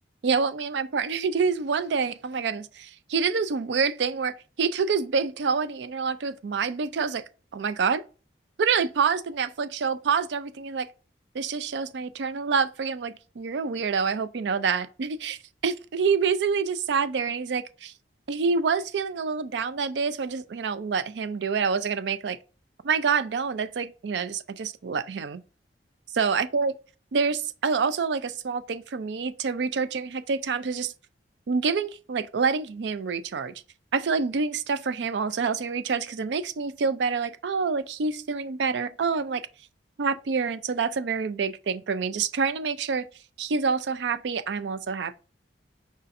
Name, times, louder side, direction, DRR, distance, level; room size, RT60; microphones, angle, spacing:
voice 1, 0.2-7.2 7.5-8.0 8.6-10.9 11.3-17.9 18.3-22.4 22.8-25.4 26.1-26.7 27.1-30.9 31.5-33.5 33.9-39.4 40.0-43.1 43.4-45.2, right 5 dB, 75° right, 0.4 m, -27 dB
4.9 x 4.2 x 2.5 m
head